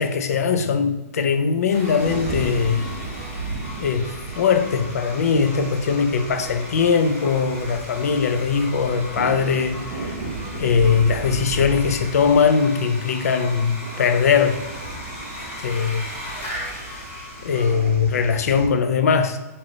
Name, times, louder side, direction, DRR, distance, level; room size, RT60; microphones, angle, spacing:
voice 1, 0.0-2.9 3.8-10.2 10.5-14.6 15.6-16.1 17.4-19.4, left 6 dB, 70° left, 9 dB, 0.4 m, -20 dB
Sawing, 1.7-18.1, left 1 dB, 35° left, 1.0 m, -38 dB
Harmonica, 1.8-17.8, left 2 dB, 10° left, 1.1 m, -44 dB
sound 1, 2.0-18.7, right 3 dB, 45° right, 0.6 m, -35 dB
3.2 x 2.6 x 3.9 m, 1.1 s
hypercardioid pair, 160°, 9 cm